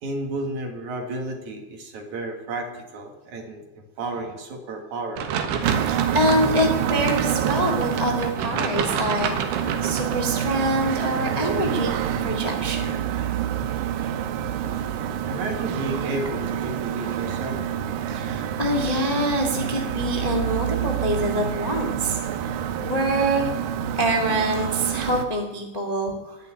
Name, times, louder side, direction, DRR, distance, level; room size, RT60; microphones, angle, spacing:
voice 1, 0.0-3.6 4.0-5.3 14.4-14.9 15.2-17.6, right 2 dB, 55° right, 3 dB, 2.8 m, -32 dB
sound 1, 5.2-10.2, right 7 dB, 90° right, 3.5 m, -29 dB
sound 2, 5.6-25.3, right 9 dB, 75° right, 2.5 m, -27 dB
voice 2, 5.8-11.9 12.2-13.2 18.1-23.5 23.9-26.4, equal, 70° left, 2 dB, 0.3 m, -25 dB
sound 3, 9.6-10.2 10.7-10.8 11.0-11.6 12.0-12.3, left 1 dB, 15° left, 2.3 m, -46 dB
19.5 x 6.9 x 9.9 m, 1.1 s
omnidirectional pair, 4.6 m